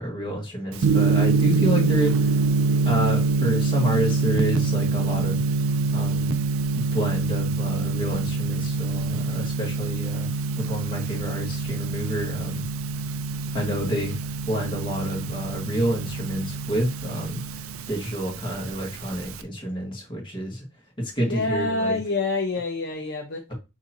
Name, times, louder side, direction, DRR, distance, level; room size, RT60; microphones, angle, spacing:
voice 1, 0.0-2.4 2.9-5.4 5.9-6.3 6.7-10.3 10.6-12.7 13.5-14.1 14.5-20.6 21.0-22.0, equal, 25° left, 1.8 m, -29 dB
Gong, 0.8-19.4, right 3 dB, 80° right, 0.5 m, -25 dB
voice 2, 21.2-23.5, left 3 dB, 55° left, 0.7 m, -27 dB
6.4 x 2.8 x 2.9 m
head